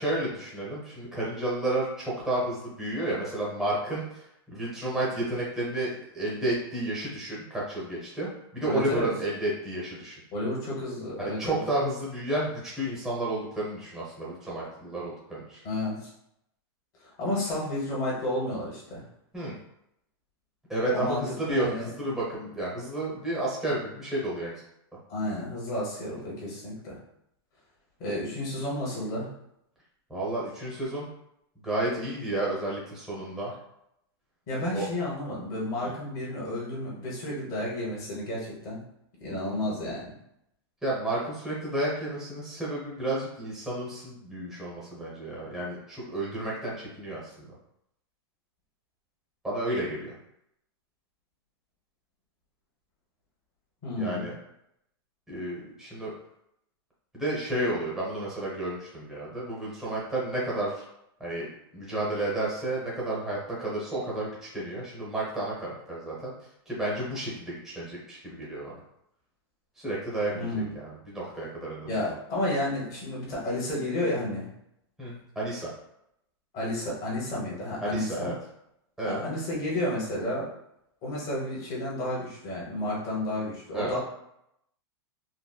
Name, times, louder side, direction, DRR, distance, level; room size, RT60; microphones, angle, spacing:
voice 1, 0.0-10.2 11.2-15.6 19.3-19.5 20.7-24.5 30.1-31.1 31.6-33.5 34.7-34.9 35.8-35.9 40.8-47.5 49.4-50.1 54.0-54.3 55.3-56.1 57.1-60.8 61.2-66.3 66.7-68.7 69.8-72.1 75.0-75.7 77.8-78.3 79.0-79.3 83.7-83.9, right 1 dB, 5° right, -6 dB, 0.8 m, -31 dB
voice 2, 8.7-9.1 10.3-11.6 15.6-16.1 17.0-19.0 20.9-21.2 21.5-21.9 25.1-27.0 28.0-29.3 34.5-38.8 39.2-40.0 53.8-54.3 70.3-70.7 71.8-74.5 76.5-78.3 79.0-80.5 81.0-84.0, left 1 dB, 25° left, -5 dB, 1.0 m, -31 dB
3.9 x 2.1 x 2.2 m, 0.78 s
supercardioid pair, 165°, 14 cm